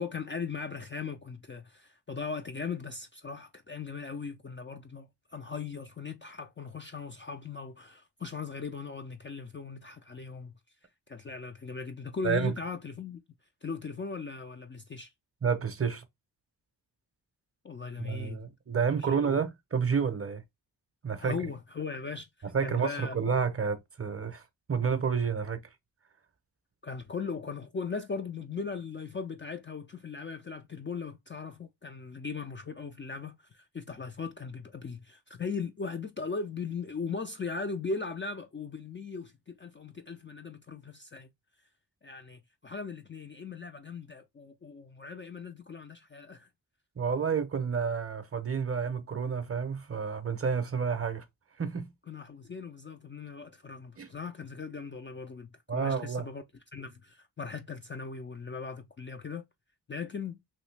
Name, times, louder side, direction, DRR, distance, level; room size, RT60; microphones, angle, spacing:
voice 1, 0.0-10.5 11.1-13.2 13.6-15.1 17.6-18.4 19.0-19.4 21.2-23.2 26.8-41.3 42.0-46.5 52.1-56.4 56.7-59.5 59.9-60.4, left 5 dB, 30° left, 0.4 m, -39 dB
voice 2, 15.4-16.0 18.0-20.4 21.0-21.4 22.5-24.4 24.7-25.6 47.0-51.2 51.6-51.9 54.0-54.1 55.7-56.3, right 6 dB, 35° right, 0.6 m, -30 dB
3.1 x 2.7 x 3.2 m
wide cardioid pair, 95°, 43 cm